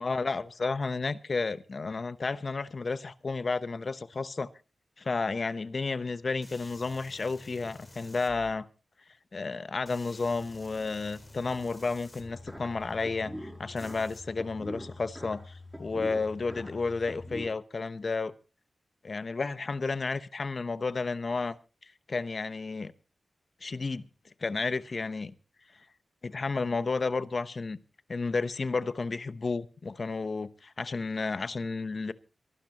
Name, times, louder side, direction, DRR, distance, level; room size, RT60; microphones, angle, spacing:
voice 1, 0.0-4.5 5.0-8.7 9.3-15.4 15.8-18.3 19.0-21.5 22.1-22.9 23.6-24.1 24.4-25.3 26.2-27.8 28.1-32.1, left 4 dB, 50° left, 0.9 m, -32 dB
sound 1, 6.4-8.5 9.8-13.1 13.8-14.2, left 2 dB, 30° left, 3.9 m, -51 dB
sound 2, 12.2-17.5, left 1 dB, 10° right, 6.1 m, -43 dB
23.5 x 12.0 x 2.9 m
cardioid pair, 60°, 0 cm